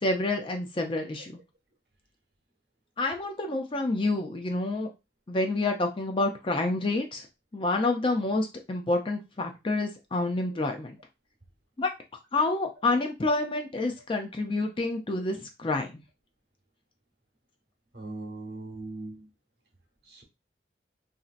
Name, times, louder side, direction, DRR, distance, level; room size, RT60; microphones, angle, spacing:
voice 1, 0.0-1.4 3.0-4.9 5.3-7.3 7.5-11.0 11.8-11.9 12.3-15.9, left 2 dB, 30° left, 4 dB, 0.5 m, -28 dB
voice 2, 17.9-19.3 20.1-20.2, right 2 dB, 60° right, 2 dB, 1.0 m, -39 dB
3.0 x 2.7 x 2.4 m, 0.25 s
head